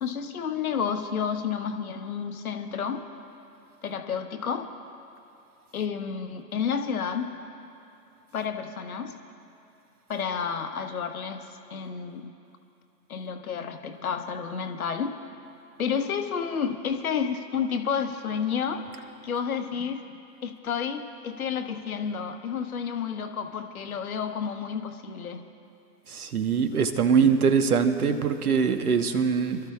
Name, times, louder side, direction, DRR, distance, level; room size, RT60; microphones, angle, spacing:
voice 1, 0.0-3.0 3.8-4.7 5.7-7.3 8.3-9.2 10.1-12.3 13.1-15.2 15.8-18.9 19.2-20.0 20.4-25.4 27.2-27.3, left 7 dB, 60° left, 7 dB, 1.1 m, -30 dB
voice 2, 26.1-29.6, right 6 dB, 65° right, 8 dB, 1.2 m, -23 dB
29.0 x 13.0 x 2.4 m, 2.8 s
figure-of-eight pair, 125°, 49 cm